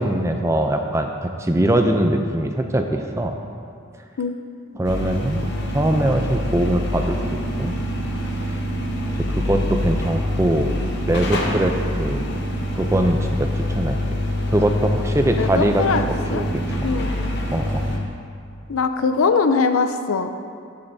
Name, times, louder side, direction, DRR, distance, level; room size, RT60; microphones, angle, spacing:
voice 1, 0.0-3.4 4.7-5.5 5.7-7.2 7.6-7.8 8.2-8.6 9.3-10.7 11.1-12.3 12.7-14.0 14.5-16.9 17.5-17.9, right 1 dB, 15° right, 4 dB, 0.4 m, -22 dB
sound 1, 4.8-18.0, left 1 dB, 55° left, 0.9 m, -25 dB
voice 2, 15.4-16.5 16.8-17.1 18.7-20.3, left 4 dB, 85° left, 8 dB, 0.5 m, -21 dB
13.0 x 6.6 x 2.7 m, 2.3 s
head